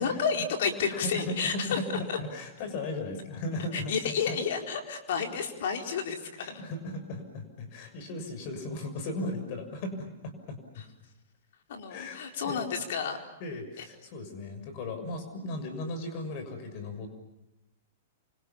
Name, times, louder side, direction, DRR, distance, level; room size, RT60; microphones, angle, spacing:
voice 1, 0.0-1.8 2.1-2.2 3.7-6.6 11.7-13.2 13.8-13.9, left 6 dB, 70° left, 4 dB, 4.5 m, -31 dB
voice 2, 0.9-4.4 6.4-10.8 11.9-12.6 13.4-17.1, left 2 dB, 50° left, 8 dB, 6.6 m, -37 dB
29.0 x 25.5 x 7.1 m, 0.91 s
hypercardioid pair, 125°, 0 cm